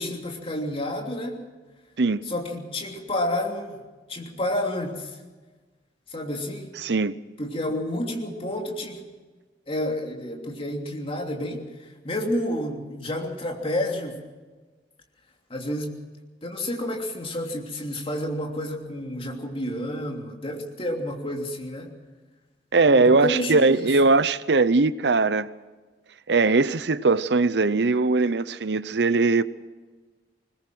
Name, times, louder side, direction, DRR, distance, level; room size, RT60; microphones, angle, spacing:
voice 1, 0.0-1.4 2.3-3.8 4.1-5.2 6.1-6.7 7.4-9.0 9.7-14.2 15.5-16.0 16.4-21.9 22.9-24.0, left 1 dB, 35° left, 3.1 m, -30 dB
voice 2, 6.8-7.2 22.7-25.5 26.3-29.4, right 3 dB, 70° right, 0.7 m, -20 dB
21.0 x 20.5 x 6.2 m
head